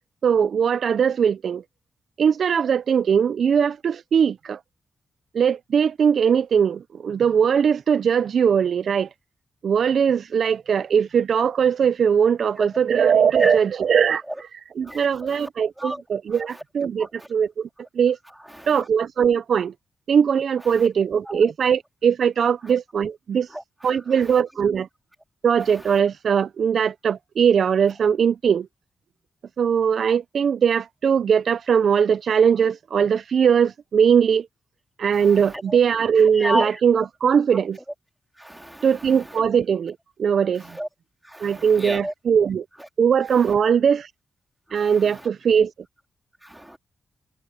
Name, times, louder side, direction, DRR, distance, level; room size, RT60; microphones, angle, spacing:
voice 1, 0.2-1.6 2.2-4.6 5.3-9.1 9.6-14.2 14.8-17.7 17.9-18.2 18.7-19.7 20.1-23.5 23.8-24.9 25.4-28.7 29.6-34.5 35.0-37.8 38.8-40.8 41.4-42.7 43.0-44.1 44.7-45.7, right 7 dB, 65° right, 0.4 m, -20 dB
voice 2, 14.8-15.5 15.8-16.0 17.0-17.3 18.6-18.8 21.3-21.4 23.5-23.9 35.1-35.8 36.4-36.7 38.4-38.9 40.7-40.9 41.3-42.1 44.7-45.3 46.4-46.8, right 1 dB, 5° right, 3.6 m, -31 dB
wide cardioid pair, 115°, 0 cm